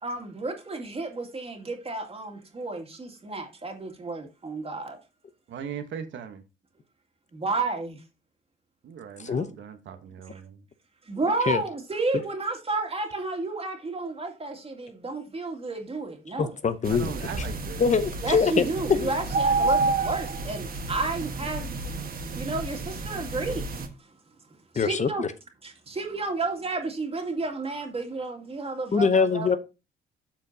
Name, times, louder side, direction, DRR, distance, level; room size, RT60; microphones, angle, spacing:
voice 1, 0.0-5.0 7.3-8.0 11.1-16.5 18.2-21.7 22.3-23.6 24.7-25.2 25.6-29.6, right 3 dB, 30° right, 2.2 m, -31 dB
voice 2, 5.5-6.4 8.8-10.6 16.9-17.9, right 7 dB, 70° right, 1.1 m, -39 dB
voice 3, 16.4-17.1 17.8-18.6 18.9-19.1 24.7-25.3 28.9-29.6, left 5 dB, 35° left, 0.8 m, -23 dB
sound 1, 16.8-23.9, right 3 dB, 45° right, 1.3 m, -30 dB
13.0 x 4.4 x 2.7 m
cardioid pair, 90°, 20 cm